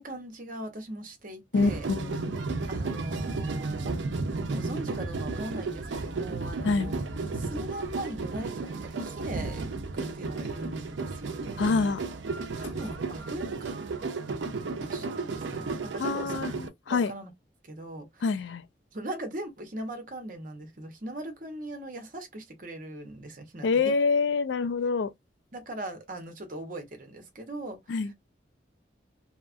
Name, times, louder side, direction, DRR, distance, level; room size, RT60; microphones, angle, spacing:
voice 1, 0.0-1.9 2.7-3.9 4.5-7.0 7.3-9.6 9.9-12.0 12.6-13.9 14.8-16.4 16.9-17.3 17.6-18.2 18.9-23.9 25.5-28.0, right 1 dB, 50° right, 0.8 m, -40 dB
voice 2, 1.5-2.4 6.6-6.9 11.6-12.0 16.0-17.1 18.2-18.6 23.6-25.1 27.9-28.1, left 4 dB, 75° left, 0.3 m, -26 dB
sound 1, 1.5-16.7, right 3 dB, 85° right, 0.5 m, -33 dB
2.8 x 2.3 x 2.4 m
head